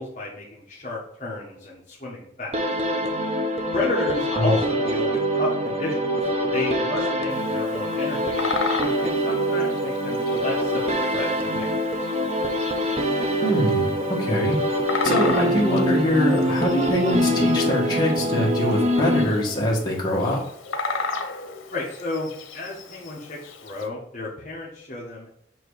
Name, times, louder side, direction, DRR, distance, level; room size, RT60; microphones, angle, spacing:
voice 1, 0.0-2.6 3.7-8.5 8.8-11.3 11.5-12.1 21.7-25.3, left 2 dB, 35° left, -5 dB, 1.3 m, -32 dB
sound 1, 2.5-19.7, equal, 30° right, 0.7 m, -24 dB
Bird vocalization bird call bird song, 7.3-23.9, left 3 dB, 85° left, 0.8 m, -35 dB
voice 2, 13.4-14.6 15.0-20.4, left 1 dB, 20° left, -4 dB, 1.5 m, -23 dB
7.5 x 2.9 x 4.8 m, 0.72 s
head